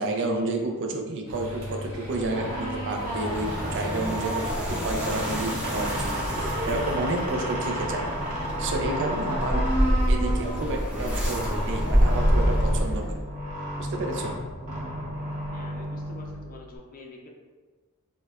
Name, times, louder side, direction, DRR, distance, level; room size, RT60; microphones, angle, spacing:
voice 1, 0.0-8.0 8.6-9.7 10.1-13.1 13.8-14.3, right 2 dB, 55° right, 3 dB, 0.4 m, -30 dB
sound 1, 1.3-6.8, equal, 75° right, 0.9 m, -38 dB
sound 2, 2.3-16.8, right 1 dB, 35° right, 0.8 m, -32 dB
sound 3, 2.8-13.2, equal, 5° right, 0.6 m, -27 dB
voice 2, 15.5-17.3, left 3 dB, 40° left, 0 dB, 0.4 m, -46 dB
4.4 x 2.2 x 2.3 m, 1.4 s
head